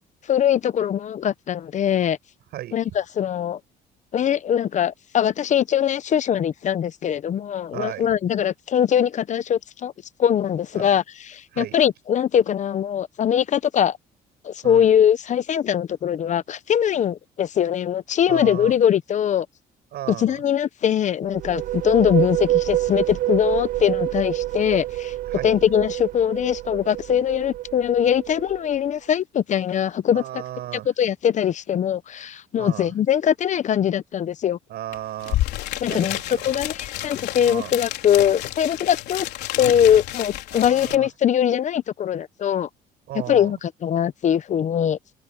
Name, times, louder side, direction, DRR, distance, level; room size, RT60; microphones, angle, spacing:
voice 1, 0.3-2.2 2.7-3.6 4.1-9.9 10.2-14.0 14.4-19.5 20.2-25.1 25.4-30.4 31.0-34.6 35.8-36.2 36.4-39.3 39.6-42.7 43.3-45.0, left 9 dB, 45° left, 0.8 m, -22 dB
voice 2, 2.5-2.8 7.7-8.1 10.7-10.9 11.5-11.8 14.6-14.9 18.3-18.8 19.9-20.4 25.3-25.6 30.1-30.9 32.6-32.9 34.7-35.4 35.8-36.6 37.4-37.7 40.5-41.1 43.1-43.5, right 13 dB, 70° right, 6.8 m, -35 dB
sound 1, 21.2-28.9, right 15 dB, 55° right, 0.4 m, -27 dB
sound 2, 34.9-35.0 35.2-41.0, left 15 dB, 80° left, 3.7 m, -30 dB
open air
cardioid pair, 110°, 17 cm